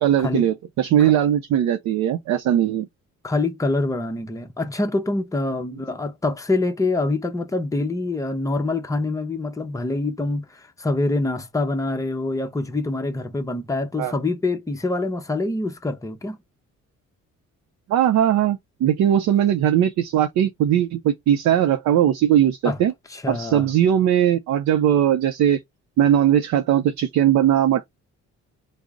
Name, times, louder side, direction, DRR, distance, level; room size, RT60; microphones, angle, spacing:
voice 1, 0.0-2.9 14.0-14.1 17.9-22.9 23.3-25.6 26.0-27.8, right 10 dB, 70° right, 0.5 m, -19 dB
voice 2, 3.2-16.4 22.6-22.8 23.1-23.7, left 2 dB, 10° left, 0.6 m, -25 dB
3.7 x 2.0 x 3.5 m
cardioid pair, 90°, 30 cm